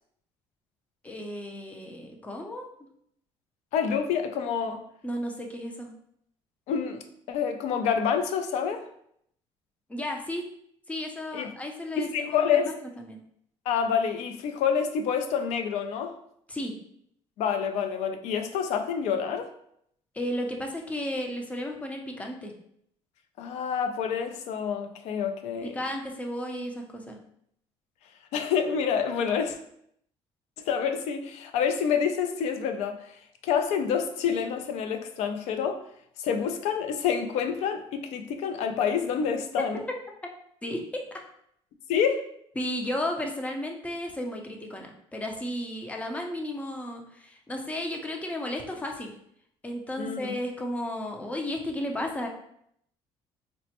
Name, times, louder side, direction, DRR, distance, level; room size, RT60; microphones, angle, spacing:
voice 1, 1.0-2.7 5.0-5.9 9.9-10.5 10.9-13.2 16.5-16.7 20.1-22.5 25.6-27.2 40.6-41.0 42.6-49.1 49.6-52.3, left 1 dB, 10° left, 2 dB, 0.5 m, -34 dB
voice 2, 3.7-4.8 6.7-8.9 11.3-11.5 12.0-12.7 13.7-16.1 17.4-19.5 23.4-25.8 28.3-29.6 30.7-33.0 33.4-35.8 36.2-39.8 41.9-42.3 50.0-50.4, left 7 dB, 75° left, 7 dB, 0.4 m, -27 dB
4.1 x 2.1 x 2.8 m, 0.71 s
cardioid pair, 120°, 11 cm